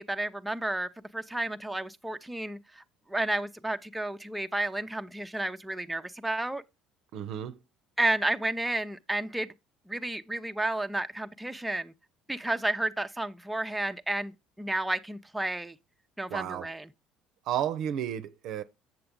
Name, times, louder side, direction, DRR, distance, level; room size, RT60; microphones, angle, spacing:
voice 1, 0.0-2.8 3.1-6.6 8.0-9.5 9.9-11.9 12.3-15.8 16.2-16.9, right 2 dB, 5° right, 0.6 m, -31 dB
voice 2, 7.1-7.6 16.3-16.7 17.5-18.6, right 10 dB, 65° right, 0.6 m, -32 dB
7.8 x 6.8 x 3.7 m
supercardioid pair, 75°, 0 cm